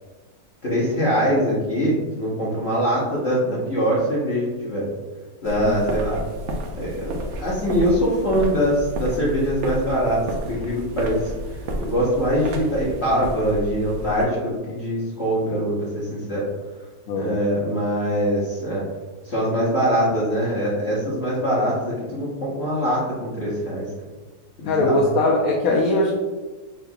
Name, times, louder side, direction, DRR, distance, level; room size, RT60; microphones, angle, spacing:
voice 1, 0.6-4.9 5.4-6.2 6.7-16.5 17.1-18.8 19.2-23.8 24.6-25.0, equal, 45° left, -7 dB, 1.2 m, -23 dB
sound 1, 5.4-14.2, right 1 dB, 60° right, 0.8 m, -31 dB
voice 2, 24.7-26.1, left 2 dB, 70° left, -2 dB, 1.0 m, -20 dB
6.0 x 3.8 x 2.3 m, 1.3 s
omnidirectional pair, 1.7 m